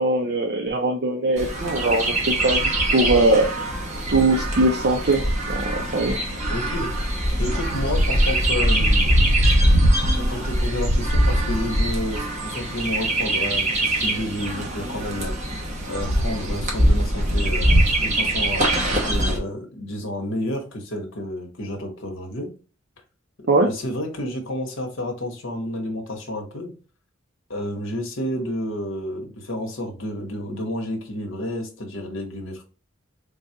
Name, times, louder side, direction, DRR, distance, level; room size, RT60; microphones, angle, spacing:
voice 1, 0.0-3.5 4.1-6.2 23.5-23.7, right 2 dB, 50° right, 0.5 m, -21 dB
Chirp tweet, 1.4-19.4, right 1 dB, 35° right, 1.0 m, -22 dB
voice 2, 6.5-6.9 7.4-9.3 10.1-15.4 15.9-22.5 23.6-26.7 27.5-32.6, left 1 dB, 65° left, 1.1 m, -30 dB
3.9 x 2.3 x 2.7 m
head